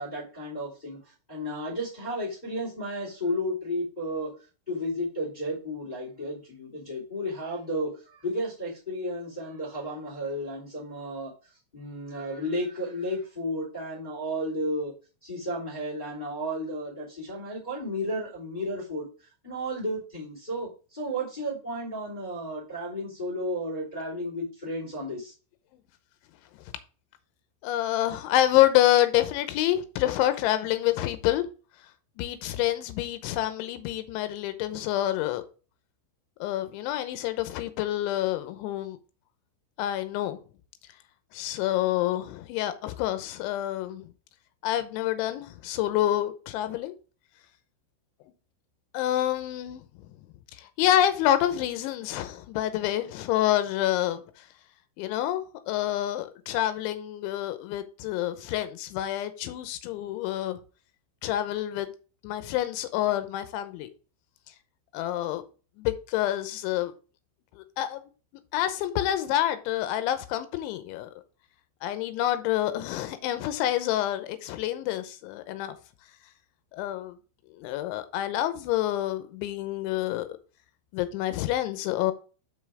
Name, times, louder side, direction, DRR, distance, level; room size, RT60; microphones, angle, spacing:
voice 1, 0.0-4.3 4.7-11.3 11.7-14.9 15.2-19.1 19.4-25.3, equal, 10° left, 2.9 m, -33 dB
voice 2, 27.6-31.5 32.2-35.4 36.4-39.0 39.8-40.4 41.3-44.0 44.6-46.9 48.9-49.8 50.6-54.2 55.0-60.6 61.2-61.9 62.2-63.9 64.9-65.4 65.8-66.9 67.6-68.0 68.5-71.1 71.8-75.8 76.7-77.1 77.5-80.3 80.9-82.1, left 13 dB, 80° left, 3.1 m, -27 dB
6.4 x 5.5 x 4.9 m
omnidirectional pair, 5.5 m